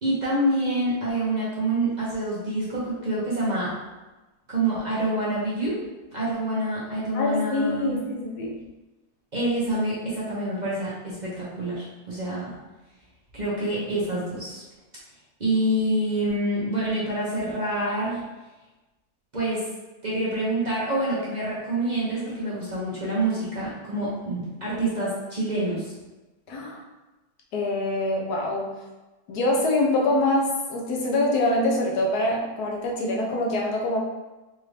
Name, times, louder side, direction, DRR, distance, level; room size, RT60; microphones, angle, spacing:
voice 1, 0.0-3.7 4.5-5.8 6.1-8.0 9.3-12.5 13.3-14.6 15.4-18.2 19.3-19.6 20.0-25.9, right 1 dB, 40° right, -8 dB, 0.7 m, -27 dB
voice 2, 7.1-8.6 26.5-26.8 27.5-28.7 29.3-34.0, left 1 dB, 70° left, -1 dB, 1.2 m, -25 dB
4.1 x 2.6 x 3.2 m, 1.1 s
omnidirectional pair, 1.9 m